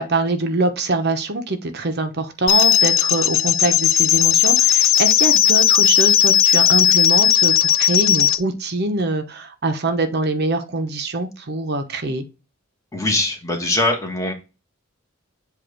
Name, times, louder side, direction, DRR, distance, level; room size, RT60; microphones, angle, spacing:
voice 1, 0.0-12.2, right 2 dB, 55° right, 7 dB, 0.9 m, -23 dB
sound 1, 2.5-8.4, left 10 dB, 70° left, 0.5 m, -16 dB
voice 2, 12.9-14.3, left 2 dB, 15° left, 2 dB, 1.4 m, -22 dB
7.8 x 2.6 x 5.0 m, 0.29 s
head